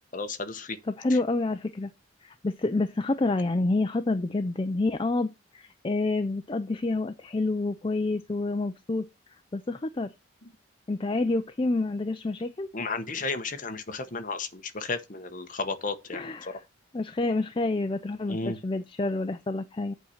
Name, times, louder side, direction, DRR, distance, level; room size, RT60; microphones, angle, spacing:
voice 1, 0.1-0.8 1.1-1.2 12.7-16.6 18.3-18.6, left 3 dB, 40° left, 1.0 m, -33 dB
voice 2, 1.0-1.9 2.2-9.1 9.5-10.1 10.9-12.7 16.1-16.6 16.9-19.9, left 2 dB, 25° left, 0.4 m, -28 dB
8.1 x 4.4 x 6.4 m
head